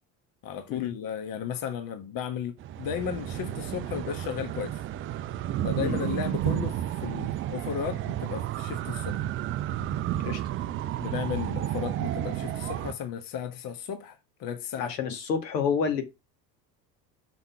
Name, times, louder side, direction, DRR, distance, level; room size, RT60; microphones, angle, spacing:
voice 1, 0.4-4.8 5.6-9.2 11.0-15.1, left 8 dB, 40° left, 1.4 m, -34 dB
sound 1, 2.6-12.9, right 12 dB, 25° right, 0.4 m, -31 dB
voice 2, 14.8-16.0, left 6 dB, 70° left, 2.0 m, -29 dB
6.2 x 5.5 x 5.7 m
figure-of-eight pair, 65°, 50 cm